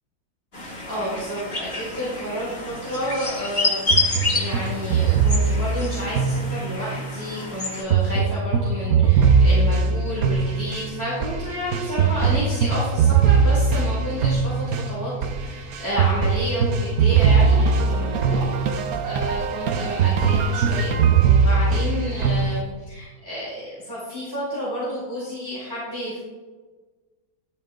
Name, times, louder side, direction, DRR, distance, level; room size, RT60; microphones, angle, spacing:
sound 1, 0.5-7.8, left 2 dB, 30° left, 2.9 m, -28 dB
voice 1, 0.6-26.2, equal, 10° right, -10 dB, 5.5 m, -31 dB
sound 2, 3.9-7.0 7.9-22.6, right 5 dB, 55° right, 1.2 m, -20 dB
15.5 x 13.5 x 3.9 m, 1.3 s
omnidirectional pair, 2.1 m